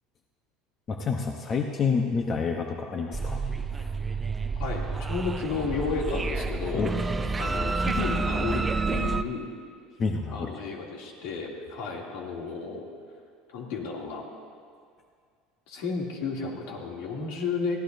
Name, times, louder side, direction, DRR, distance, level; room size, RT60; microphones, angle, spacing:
voice 1, 0.9-3.4 3.8-3.9 6.7-6.9 10.0-10.5, left 5 dB, 30° left, 3 dB, 0.9 m, -28 dB
sound 1, 3.1-9.2, right 3 dB, 15° right, 0.4 m, -29 dB
voice 2, 4.6-6.8 7.4-9.5 10.3-12.8 13.5-14.2 15.7-17.8, left 4 dB, 75° left, -2 dB, 2.7 m, -32 dB
23.0 x 16.0 x 2.7 m, 2.1 s
cardioid pair, 145°, 0 cm